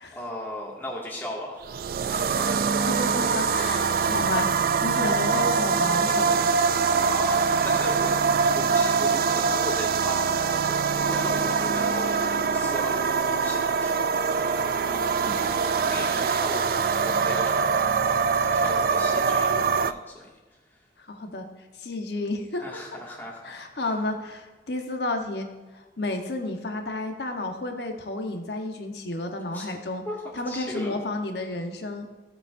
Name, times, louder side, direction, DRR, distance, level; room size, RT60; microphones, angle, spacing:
voice 1, 0.1-1.6 2.1-3.4 3.7-4.1 6.9-8.2 8.5-17.8 18.5-19.5 19.8-20.2 20.5-20.8 22.6-23.9 29.5-29.7 30.1-30.9, left 1 dB, 10° left, -4 dB, 2.1 m, -37 dB
sound 1, 1.6-19.9, right 5 dB, 55° right, 0.3 m, -24 dB
voice 2, 3.0-6.6 15.3-15.4 18.6-18.7 21.0-21.5 21.8-22.6 23.4-25.5 25.7-30.0 30.4-32.1, left 2 dB, 70° left, 4 dB, 1.1 m, -31 dB
16.5 x 7.0 x 2.6 m, 1.2 s
head